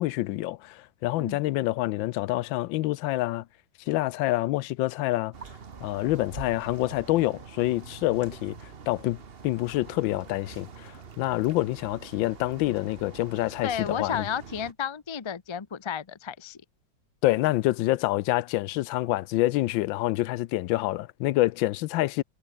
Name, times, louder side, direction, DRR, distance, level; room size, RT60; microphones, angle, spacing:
voice 1, 0.0-3.5 3.9-5.3 5.8-14.3 17.2-22.2, left 17 dB, 90° left, 1.3 m, -27 dB
sound 1, 5.3-14.7, right 6 dB, 35° right, 1.2 m, -45 dB
voice 2, 13.6-16.6, left 7 dB, 40° left, 0.4 m, -32 dB
omnidirectional pair, 2.0 m